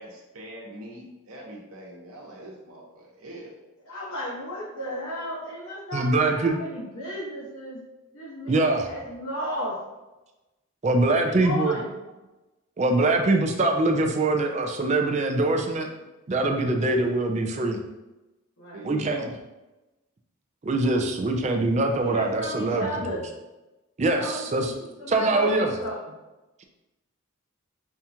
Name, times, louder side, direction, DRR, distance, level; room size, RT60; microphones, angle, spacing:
voice 1, 0.0-3.5 18.7-19.3, right 1 dB, 80° right, -2 dB, 1.0 m, -43 dB
voice 2, 3.8-7.8 8.1-9.8 11.2-11.9 18.6-18.8 22.0-23.3 24.1-26.0, equal, 80° left, -5 dB, 1.4 m, -34 dB
voice 3, 5.9-6.6 8.5-8.9 10.8-11.8 12.8-15.9 16.3-17.8 18.8-19.2 20.6-23.2 24.0-24.7 25.1-25.7, right 2 dB, 30° right, 4 dB, 0.4 m, -23 dB
5.6 x 2.4 x 2.8 m, 1.0 s
head